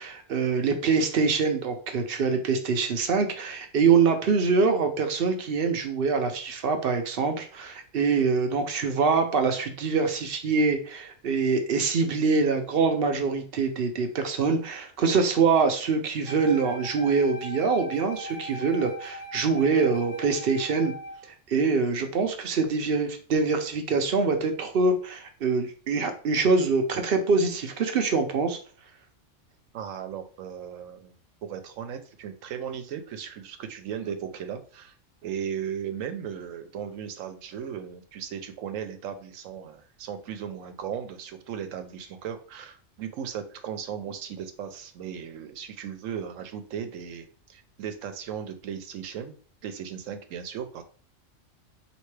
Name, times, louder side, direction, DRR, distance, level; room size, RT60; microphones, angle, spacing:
voice 1, 0.0-20.9 21.5-28.6, right 4 dB, 55° right, 6 dB, 0.8 m, -24 dB
Wind instrument woodwind instrument, 16.2-21.3, right 1 dB, 70° left, 1.3 m, -40 dB
voice 2, 29.7-31.1 31.4-34.9 35.2-49.4 49.6-50.8, right 8 dB, 85° right, 8 dB, 1.0 m, -36 dB
4.4 x 2.9 x 3.2 m, 0.42 s
omnidirectional pair, 1.3 m